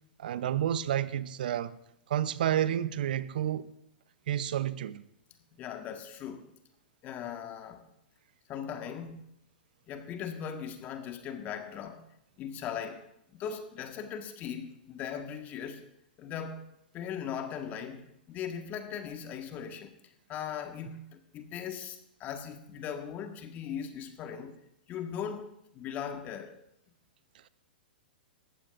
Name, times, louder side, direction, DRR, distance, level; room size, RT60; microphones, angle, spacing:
voice 1, 0.2-1.7 2.1-3.7 4.3-5.0, right 11 dB, 65° right, 0.7 m, -30 dB
voice 2, 5.6-6.5 7.0-7.8 8.5-9.3 9.9-12.0 12.4-13.0 13.3-15.8 16.2-16.6 16.9-24.6 24.9-26.6, left 8 dB, 30° left, 1.6 m, -39 dB
19.5 x 14.5 x 2.6 m
hypercardioid pair, 110°, 5 cm